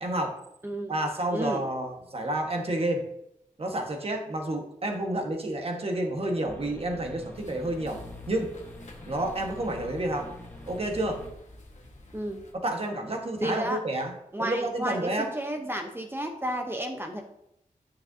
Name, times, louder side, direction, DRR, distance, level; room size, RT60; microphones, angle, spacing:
voice 1, 0.0-0.4 0.9-3.0 3.6-8.0 8.3-8.5 9.0-10.3 10.7-11.2 12.6-14.1 14.4-15.3, right 1 dB, 45° right, 3 dB, 1.4 m, -30 dB
voice 2, 0.6-0.9 1.3-1.6 12.1-12.4 13.4-13.8 14.3-17.2, right 1 dB, 15° right, 3 dB, 0.8 m, -32 dB
sound 1, 6.5-11.6, left 2 dB, 15° left, 1.2 m, -45 dB
sound 2, 7.3-12.5, left 1 dB, 60° left, 1.5 m, -51 dB
8.9 x 6.7 x 2.7 m, 0.78 s
wide cardioid pair, 95°, 14 cm